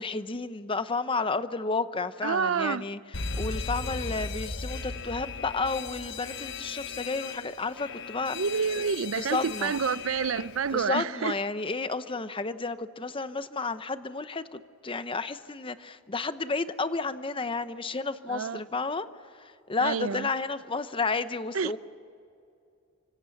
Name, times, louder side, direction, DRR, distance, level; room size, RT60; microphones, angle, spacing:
voice 1, 0.0-8.4 9.1-9.7 10.7-19.1 19.3-21.8, left 3 dB, 25° left, 0.8 m, -32 dB
voice 2, 2.2-2.8 8.3-11.3 18.3-18.6 19.8-20.3 21.5-21.8, right 6 dB, 75° right, 0.5 m, -28 dB
Alarm, 3.1-10.8, left 4 dB, 60° left, 1.2 m, -37 dB
27.5 x 25.0 x 7.2 m
head